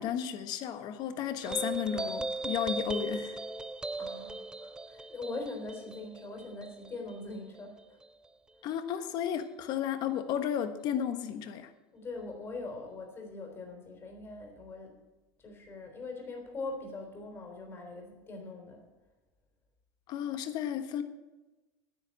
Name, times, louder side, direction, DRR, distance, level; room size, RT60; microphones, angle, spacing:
voice 1, 0.0-3.4 8.6-11.7 20.1-21.0, left 9 dB, 50° left, 9 dB, 1.3 m, -33 dB
sound 1, 1.4-8.3, right 2 dB, 10° right, 0.5 m, -38 dB
voice 2, 4.0-8.0 11.9-15.0 15.4-18.8, left 3 dB, 25° left, 2 dB, 3.5 m, -42 dB
9.9 x 9.2 x 8.3 m, 1.1 s
supercardioid pair, 135°, 9 cm